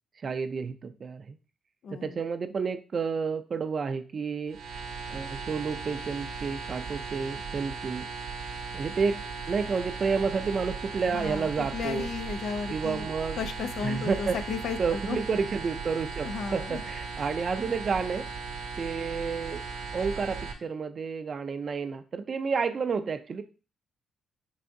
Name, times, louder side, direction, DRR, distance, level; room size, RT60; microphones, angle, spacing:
voice 1, 0.2-1.4 1.9-4.6 5.1-8.1 8.7-9.2 9.5-12.1 12.7-13.4 13.8-14.4 14.8-18.3 18.8-19.6 19.9-23.4, right 5 dB, 45° right, 10 dB, 0.4 m, -30 dB
voice 2, 1.8-2.2 11.1-11.5 11.7-13.1 13.4-15.2 16.2-16.8, left 6 dB, 75° left, 9 dB, 0.5 m, -34 dB
sound 1, 4.5-20.5, right 4 dB, 85° right, 0.8 m, -37 dB
4.7 x 3.4 x 2.6 m, 0.35 s
cardioid pair, 100°, 0 cm